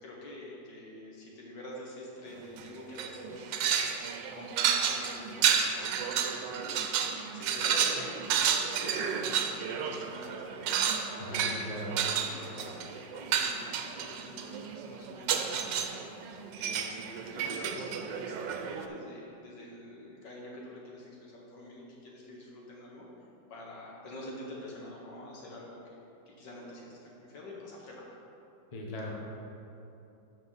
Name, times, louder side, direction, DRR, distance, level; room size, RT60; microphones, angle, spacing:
voice 1, 0.0-4.0 4.3-16.0 16.5-26.0 26.3-28.1, left 1 dB, 70° left, -3 dB, 2.1 m, -46 dB
sound 1, 2.4-2.7 3.0-18.9, right 7 dB, 85° right, 1.3 m, -31 dB
voice 2, 11.2-12.0 28.7-29.1, equal, 25° left, -2 dB, 1.0 m, -39 dB
12.5 x 5.1 x 4.1 m, 2.9 s
omnidirectional pair, 2.0 m